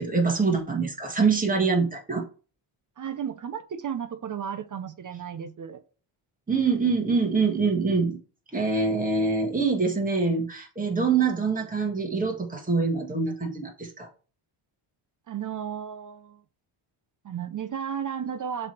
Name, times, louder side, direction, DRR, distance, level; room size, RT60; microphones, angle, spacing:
voice 1, 0.0-2.2 6.5-8.2 8.5-14.1, right 4 dB, 15° right, 1.6 m, -25 dB
voice 2, 3.0-5.8 15.3-16.4 17.2-18.7, right 8 dB, 40° right, 0.6 m, -34 dB
7.3 x 3.4 x 4.4 m
cardioid pair, 135°, 50 cm